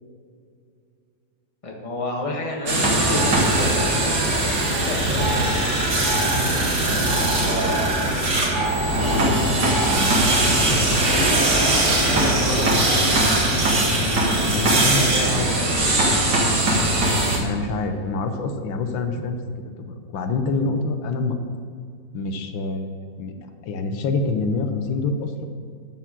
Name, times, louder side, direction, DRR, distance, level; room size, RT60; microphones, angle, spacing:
voice 1, 1.6-7.7 9.0-9.3 11.3-12.9 14.4-15.9, left 1 dB, 20° left, -1 dB, 1.4 m, -31 dB
sound 1, 2.7-17.4, right 1 dB, 60° right, 2.4 m, -20 dB
voice 2, 8.9-9.3 9.7-10.5 14.4-15.4 17.4-19.4 19.8-21.3 22.1-25.5, left 3 dB, 85° left, 6 dB, 1.6 m, -27 dB
13.0 x 4.5 x 7.4 m, 2.3 s
omnidirectional pair, 2.1 m